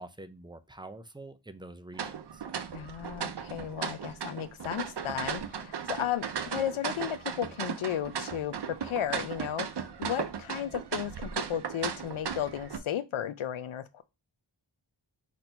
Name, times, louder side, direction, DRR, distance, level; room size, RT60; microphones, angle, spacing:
voice 1, 0.0-2.4, right 2 dB, 10° right, 0.4 m, -46 dB
sound 1, 1.9-12.8, right 7 dB, 60° right, 0.6 m, -36 dB
voice 2, 2.7-9.7 10.0-14.0, left 10 dB, 80° left, 0.6 m, -34 dB
4.3 x 2.6 x 4.3 m
wide cardioid pair, 60°, 48 cm